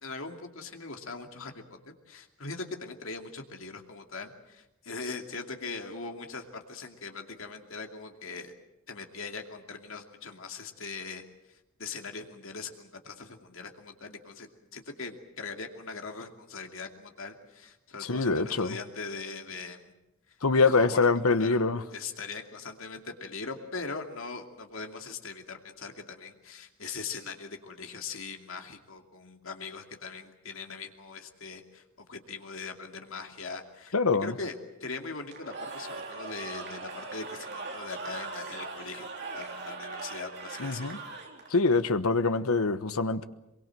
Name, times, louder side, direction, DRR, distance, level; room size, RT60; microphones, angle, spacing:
voice 1, 0.0-1.8 2.1-8.5 8.9-11.2 11.5-19.9 20.3-20.4 20.6-21.6 21.9-31.8 32.1-33.9 34.2-39.1 39.3-40.9, left 4 dB, 65° left, 2.6 m, -41 dB
voice 2, 18.0-18.8 20.4-21.8 33.9-34.3 40.6-41.0 41.5-43.2, left 4 dB, 85° left, 1.2 m, -24 dB
Cheering / Crowd, 35.3-41.6, right 3 dB, 50° right, 3.5 m, -40 dB
24.0 x 23.0 x 7.7 m
head